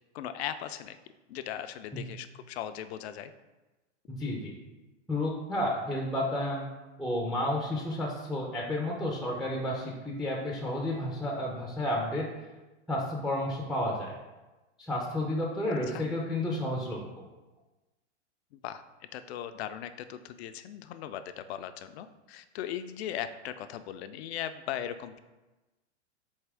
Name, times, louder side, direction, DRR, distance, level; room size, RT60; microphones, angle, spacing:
voice 1, 0.1-1.0 1.3-3.3 15.9-16.0 18.5-18.8 19.1-25.2, left 10 dB, 65° left, 11 dB, 0.5 m, -38 dB
voice 2, 4.1-4.5 5.1-6.7 7.0-12.3 12.9-14.2 14.8-17.3, left 1 dB, ahead, -2 dB, 0.4 m, -31 dB
4.2 x 3.6 x 3.3 m, 1.1 s
hypercardioid pair, 115°, 35 cm